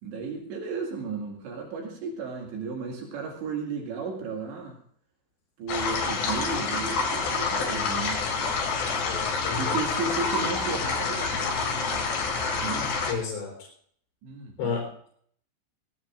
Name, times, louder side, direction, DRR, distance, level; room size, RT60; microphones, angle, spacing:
voice 1, 0.0-4.8 5.6-8.2 9.6-12.1 12.6-12.9 14.2-14.8, right 4 dB, 80° right, 0 dB, 4.4 m, -34 dB
sound 1, 5.7-13.1, left 4 dB, 70° left, 4.8 m, -28 dB
voice 2, 9.1-9.8 13.1-13.6 14.6-15.1, left 5 dB, 90° left, -2 dB, 6.3 m, -32 dB
21.0 x 16.5 x 2.5 m, 0.62 s
omnidirectional pair, 5.1 m